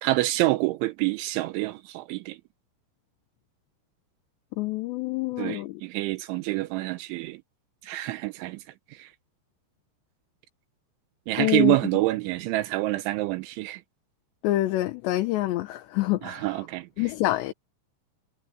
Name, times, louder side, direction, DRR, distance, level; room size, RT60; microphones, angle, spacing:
voice 1, 0.0-2.4 5.4-7.4 7.9-8.6 9.0-9.1 11.3-13.8 16.2-16.9, right 18 dB, 85° right, 3.2 m, -27 dB
voice 2, 4.6-5.8 11.4-11.8 14.4-16.7 17.0-17.5, left 16 dB, 75° left, 3.1 m, -26 dB
omnidirectional pair, 5.4 m